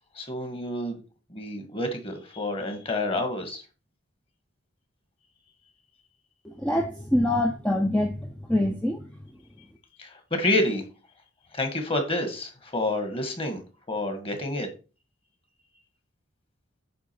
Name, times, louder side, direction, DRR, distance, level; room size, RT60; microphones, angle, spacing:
voice 1, 0.2-1.0 1.3-3.6 10.0-10.8 11.5-13.6 13.9-14.7, left 1 dB, 25° left, 1.8 m, -28 dB
voice 2, 6.4-9.0, left 1 dB, 5° left, 0.7 m, -25 dB
8.7 x 3.8 x 5.9 m
head